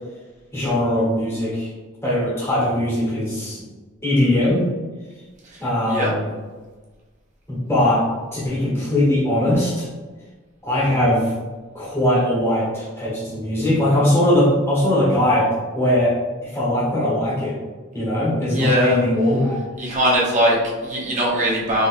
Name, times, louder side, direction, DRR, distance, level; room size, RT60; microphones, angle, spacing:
voice 1, 0.5-1.7 2.0-3.7 4.0-4.7 5.6-6.2 7.5-9.9 10.6-11.3 11.7-15.5 15.7-16.2 16.4-17.6 17.9-19.6, left 1 dB, 15° left, -9 dB, 1.1 m, -20 dB
voice 2, 18.5-19.0 19.8-21.9, right 1 dB, 35° right, -5 dB, 0.9 m, -21 dB
3.7 x 2.7 x 2.5 m, 1.3 s
head